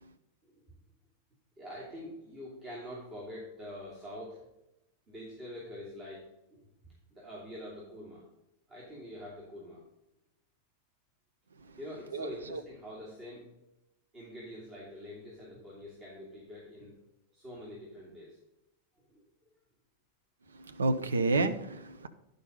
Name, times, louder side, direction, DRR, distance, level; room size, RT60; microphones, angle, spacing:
voice 1, 1.6-4.4 5.1-8.3 8.7-9.8 11.8-13.5 14.1-17.0 17.3-18.4 19.1-19.3, left 1 dB, 30° right, -6 dB, 2.9 m, -45 dB
voice 2, 12.1-12.6 20.7-22.1, right 3 dB, 70° right, 9 dB, 0.6 m, -30 dB
11.0 x 5.3 x 5.2 m, 0.89 s
figure-of-eight pair, 90°, 0 cm